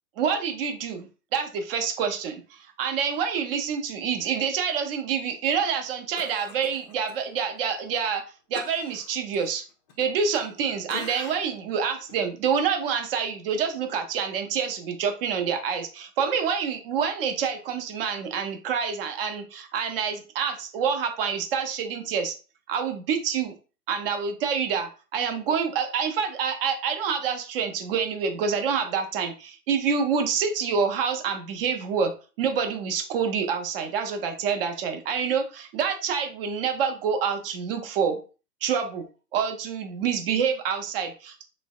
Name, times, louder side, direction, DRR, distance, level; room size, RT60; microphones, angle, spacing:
voice 1, 0.2-1.1 1.3-8.2 8.5-9.6 10.0-22.4 22.7-23.6 23.9-32.1 32.4-38.2 38.6-39.0 39.3-41.4, right 6 dB, 40° right, 6 dB, 0.5 m, -27 dB
Cough, 6.2-7.2 7.6-7.7 8.5-10.6 10.9-11.6 12.1-12.2, left 4 dB, 30° left, 0.4 m, -42 dB
3.2 x 2.0 x 2.3 m, 0.35 s
figure-of-eight pair, 110°, 48 cm